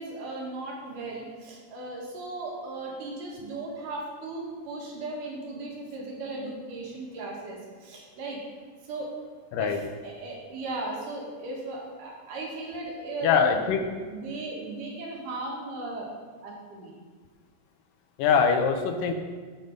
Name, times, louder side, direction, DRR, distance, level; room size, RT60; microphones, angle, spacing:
voice 1, 0.0-8.4 8.8-9.1 9.6-13.6 14.0-16.9, right 2 dB, 70° right, -2 dB, 3.1 m, -37 dB
voice 2, 13.2-13.8 18.2-19.1, left 6 dB, 80° left, 5 dB, 2.5 m, -23 dB
7.8 x 7.5 x 5.2 m, 1.5 s
omnidirectional pair, 3.9 m